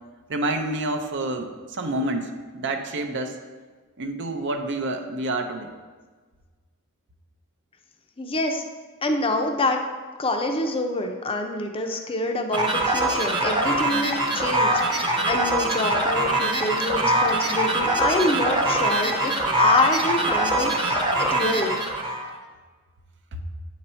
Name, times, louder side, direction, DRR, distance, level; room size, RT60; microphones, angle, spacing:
voice 1, 0.3-3.4 4.0-5.7 23.3-23.4, right 2 dB, 55° right, 5 dB, 0.6 m, -28 dB
voice 2, 8.2-8.6 9.0-9.8 10.2-21.8, left 2 dB, 25° left, 4 dB, 0.6 m, -26 dB
sound 1, 12.5-22.3, right 1 dB, 20° right, 0.9 m, -23 dB
8.6 x 4.1 x 4.4 m, 1.4 s
head